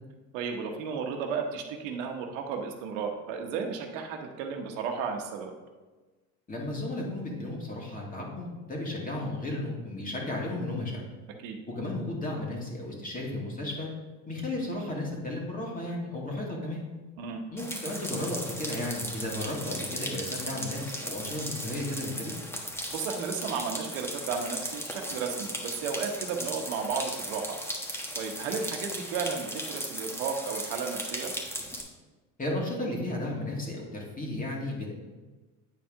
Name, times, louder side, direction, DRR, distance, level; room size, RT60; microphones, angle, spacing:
voice 1, 0.3-5.5 11.4-11.6 17.2-17.4 22.9-27.5 27.9-31.3, right 5 dB, 85° right, 3 dB, 1.1 m, -34 dB
voice 2, 6.5-11.0 11.8-13.9 14.3-16.8 17.5-22.3 32.4-34.9, left 1 dB, 20° left, -2 dB, 2.1 m, -34 dB
sound 1, 17.6-31.8, equal, 5° left, 1.3 m, -37 dB
9.2 x 4.5 x 3.7 m, 1.2 s
supercardioid pair, 100°, 38 cm